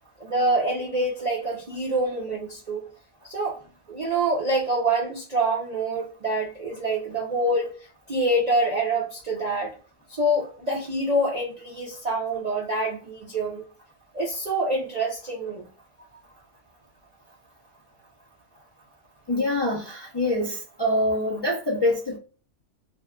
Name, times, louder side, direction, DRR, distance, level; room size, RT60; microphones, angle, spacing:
voice 1, 0.2-2.9 3.2-3.6 3.9-7.7 8.1-9.8 10.1-13.6 14.1-15.6, right 1 dB, 50° right, 0.5 m, -26 dB
voice 2, 19.3-22.2, left 1 dB, 30° left, 0.4 m, -25 dB
2.6 x 2.3 x 2.2 m
omnidirectional pair, 1.4 m